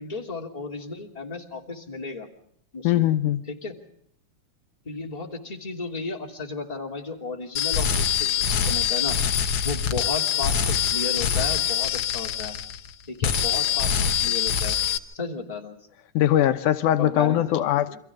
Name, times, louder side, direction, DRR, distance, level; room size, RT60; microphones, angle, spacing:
voice 1, 0.0-2.3 2.7-3.0 3.5-3.7 4.8-9.2 9.5-12.6 13.1-14.8 15.1-15.8 17.0-18.0, left 4 dB, 15° left, 0 dB, 2.7 m, -34 dB
voice 2, 2.8-3.4 16.1-18.0, left 12 dB, 85° left, 9 dB, 2.5 m, -21 dB
sound 1, 7.6-12.9 13.2-15.0, left 9 dB, 60° left, 1.7 m, -24 dB
29.0 x 25.0 x 3.7 m, 0.69 s
omnidirectional pair, 3.5 m